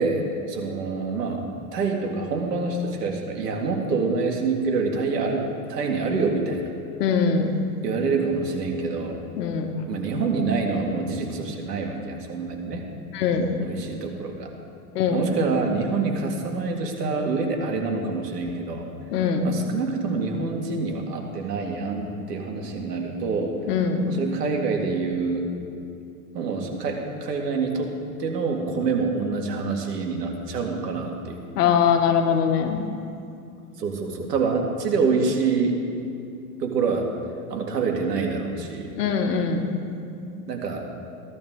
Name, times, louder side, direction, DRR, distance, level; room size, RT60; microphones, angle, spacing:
voice 1, 0.0-1.4 1.7-6.6 7.8-9.2 9.9-12.8 13.6-14.5 15.1-18.9 19.4-23.6 24.0-25.5 26.3-27.9 28.2-31.4 33.8-35.8 36.6-37.1 37.5-38.9 40.5-40.8, right 4 dB, 90° right, 1 dB, 2.1 m, -26 dB
voice 2, 7.0-7.5 9.4-9.7 13.1-13.5 14.9-15.2 19.1-19.4 23.7-24.0 31.5-32.8 39.0-39.6, left 6 dB, 75° left, 4 dB, 1.6 m, -22 dB
16.0 x 12.0 x 3.8 m, 2.6 s
hypercardioid pair, 125°, 47 cm